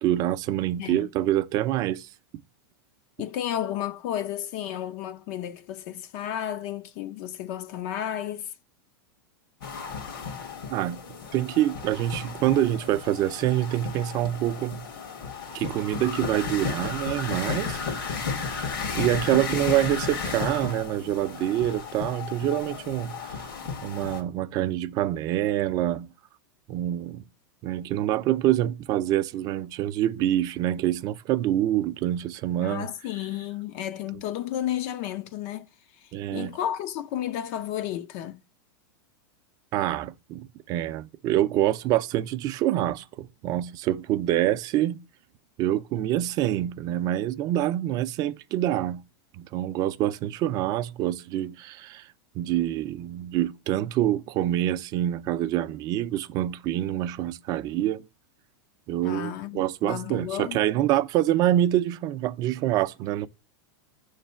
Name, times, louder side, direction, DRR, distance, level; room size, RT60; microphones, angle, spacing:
voice 1, 0.0-2.1 10.7-11.0 11.3-14.9 15.5-17.8 18.2-18.3 18.9-23.5 23.8-26.1 26.7-27.2 27.6-32.9 36.1-36.6 39.7-45.0 45.6-49.0 49.3-52.1 52.3-58.0 58.9-63.3, right 13 dB, 35° right, 0.4 m, -26 dB
voice 2, 0.8-1.1 3.2-8.5 32.6-38.4 59.0-60.6, left 11 dB, 45° left, 0.5 m, -32 dB
sound 1, 9.6-24.2, left 5 dB, 80° left, 1.6 m, -34 dB
6.6 x 3.2 x 5.4 m
supercardioid pair, 145°, 12 cm